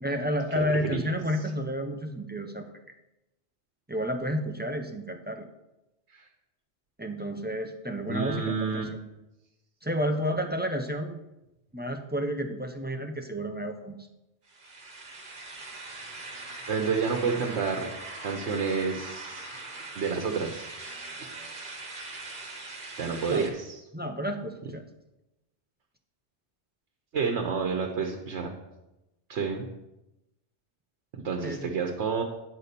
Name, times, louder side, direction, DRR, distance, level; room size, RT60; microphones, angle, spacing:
voice 1, 0.0-2.7 3.9-5.5 7.0-9.0 9.8-11.2 11.7-14.0 23.3-23.5 23.9-24.8 31.4-31.7, equal, 15° right, 4 dB, 0.4 m, -31 dB
voice 2, 0.5-1.1 6.1-6.3 8.1-8.8 16.7-19.5 19.9-20.7 23.0-23.8 27.1-28.5 29.3-29.7 31.1-32.2, right 5 dB, 80° right, 3 dB, 1.2 m, -29 dB
sound 1, 14.5-23.5, right 2 dB, 50° right, 1.3 m, -41 dB
9.5 x 4.2 x 6.7 m, 0.94 s
omnidirectional pair, 1.1 m